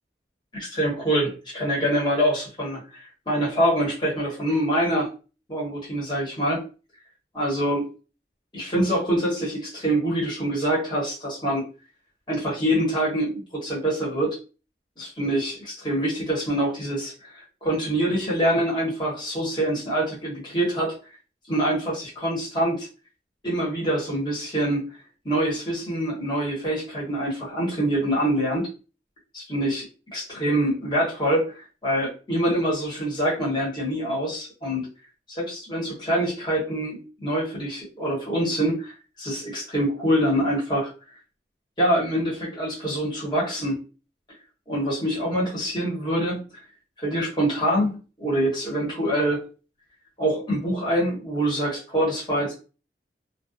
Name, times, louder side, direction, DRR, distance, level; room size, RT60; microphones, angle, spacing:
voice 1, 0.5-5.1 5.5-6.6 7.3-7.8 8.5-11.6 12.3-14.4 15.0-21.0 21.5-22.9 23.4-24.9 25.2-28.7 29.3-29.8 30.1-34.9 35.3-40.9 41.8-43.8 44.7-46.4 47.0-49.4 50.2-52.5, right 1 dB, 25° left, -6 dB, 1.1 m, -25 dB
2.4 x 2.2 x 2.5 m, 0.34 s
head